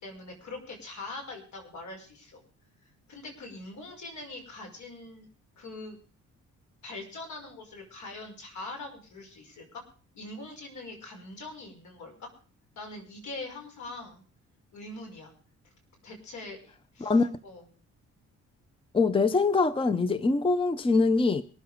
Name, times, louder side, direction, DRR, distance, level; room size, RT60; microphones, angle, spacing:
voice 1, 0.0-2.4 3.1-5.3 5.6-6.0 6.8-9.8 10.1-12.3 12.8-14.2 14.7-15.3 16.0-17.6, left 2 dB, 70° left, 5.7 m, -43 dB
voice 2, 18.9-21.4, left 3 dB, 20° left, 0.7 m, -23 dB
23.0 x 7.7 x 5.0 m
cardioid pair, 90°, 30 cm